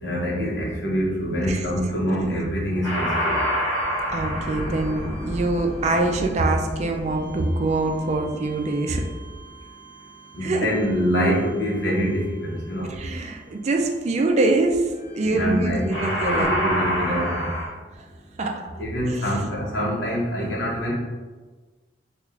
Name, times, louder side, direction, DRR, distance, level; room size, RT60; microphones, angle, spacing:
voice 1, 0.0-3.4 10.3-12.9 15.2-16.1 16.3-17.5 18.8-20.9, equal, 80° left, -3 dB, 1.0 m, -25 dB
sound 1, 2.8-10.0 15.2-15.5 15.9-17.7, equal, 20° left, 1.0 m, -28 dB
voice 2, 4.1-9.0 10.4-10.7 12.9-14.9 15.1-16.5 18.4-18.6 19.1-19.3, right 2 dB, 40° right, 3 dB, 0.3 m, -24 dB
3.1 x 2.4 x 3.5 m, 1.3 s
head